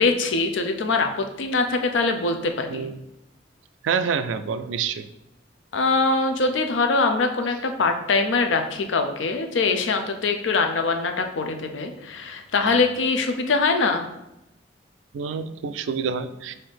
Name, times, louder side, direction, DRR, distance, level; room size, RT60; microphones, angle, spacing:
voice 1, 0.0-2.9 5.7-14.1, left 3 dB, 85° left, 6 dB, 0.5 m, -23 dB
voice 2, 2.7-3.0 3.8-5.1 15.1-16.6, right 6 dB, 90° right, 12 dB, 0.3 m, -27 dB
5.6 x 2.7 x 3.4 m, 0.91 s
head